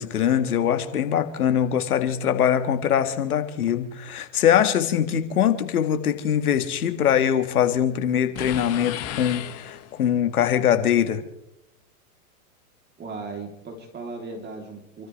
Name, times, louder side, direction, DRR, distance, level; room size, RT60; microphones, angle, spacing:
voice 1, 0.0-11.2, left 9 dB, 75° left, 9 dB, 1.9 m, -22 dB
sound 1, 8.4-10.2, left 11 dB, 35° left, 1.5 m, -34 dB
voice 2, 13.0-15.1, right 3 dB, 20° right, 2 dB, 3.2 m, -37 dB
28.0 x 13.5 x 3.3 m, 0.83 s
hypercardioid pair, 115°, 44 cm